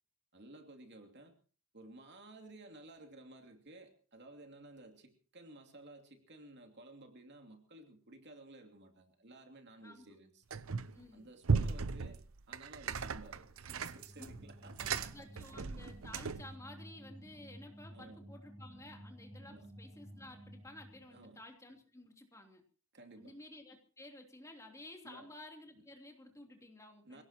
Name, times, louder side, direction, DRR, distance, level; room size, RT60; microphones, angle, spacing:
voice 1, 0.3-1.4 1.7-10.6 11.1-15.3 17.9-18.3 19.5-19.7 21.1-21.4 22.9-23.4 25.0-25.3 25.7-25.8 27.0-27.2, right 2 dB, 55° right, 4 dB, 2.8 m, -55 dB
voice 2, 9.8-10.1 10.9-11.3 14.2-14.3 15.0-22.6 23.2-27.2, left 1 dB, 15° left, 2 dB, 3.2 m, -53 dB
sound 1, 10.5-11.0 11.4-16.6, right 5 dB, 75° right, 0.8 m, -37 dB
sound 2, 14.0-21.3, equal, 20° right, 2.4 m, -54 dB
26.5 x 17.5 x 3.0 m, 0.39 s
head